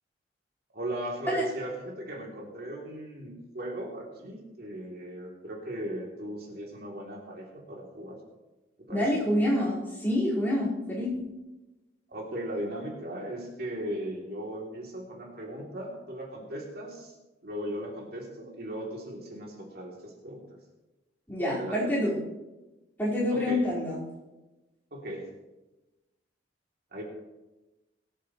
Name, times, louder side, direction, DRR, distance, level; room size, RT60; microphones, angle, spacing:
voice 1, 0.7-8.2 8.8-9.2 12.1-17.1 17.4-20.4 21.6-21.9 23.3-23.6 24.9-25.3 26.9-27.0, right 1 dB, 60° right, -2 dB, 3.1 m, -38 dB
voice 2, 8.9-11.2 21.3-22.2 23.0-24.1, left 1 dB, 10° left, -8 dB, 5.0 m, -27 dB
22.5 x 10.0 x 3.2 m, 1.1 s
head